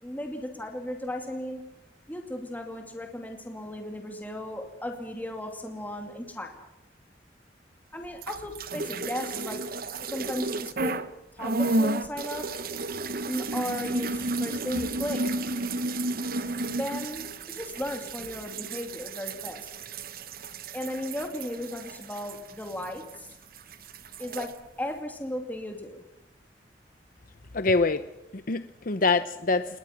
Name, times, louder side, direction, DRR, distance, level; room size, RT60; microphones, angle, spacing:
voice 1, 0.0-1.6 2.1-6.7 7.9-9.6 10.0-11.0 11.3-12.5 13.2-15.2 16.7-19.7 20.7-23.3 24.2-24.5 24.8-26.0, left 1 dB, 10° left, 3 dB, 2.6 m, -36 dB
sound 1, 8.1-11.1 11.4-23.3 23.6-24.5, right 2 dB, 55° right, 1.2 m, -32 dB
voice 2, 27.5-28.0 28.3-29.8, left 3 dB, 50° left, 11 dB, 0.8 m, -25 dB
29.5 x 21.0 x 6.0 m, 0.91 s
head